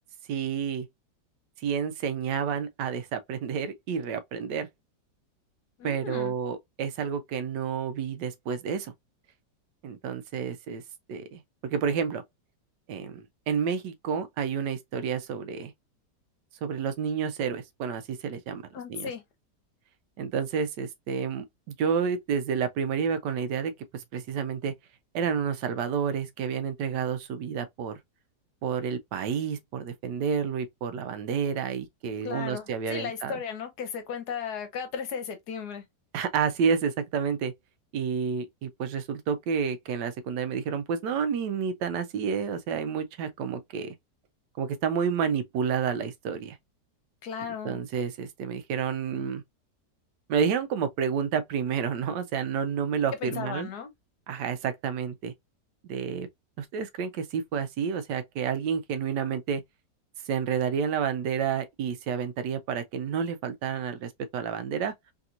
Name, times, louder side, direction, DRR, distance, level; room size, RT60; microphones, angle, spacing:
voice 1, 0.3-0.9 1.6-4.7 5.8-8.9 9.8-10.8 11.1-12.2 12.9-15.7 16.6-18.6 18.9-19.1 20.2-24.7 25.1-28.0 28.6-33.4 36.1-37.5 37.9-44.0 44.6-46.6 47.5-49.4 50.3-53.7 54.3-55.3 55.8-56.3 56.6-59.6 60.3-64.9, right 7 dB, 80° right, 1.2 m, -30 dB
voice 2, 5.8-6.3 18.7-19.2 32.2-35.8 47.2-47.8 53.2-53.9, left 7 dB, 70° left, 1.3 m, -35 dB
3.4 x 2.8 x 2.3 m
omnidirectional pair, 1.9 m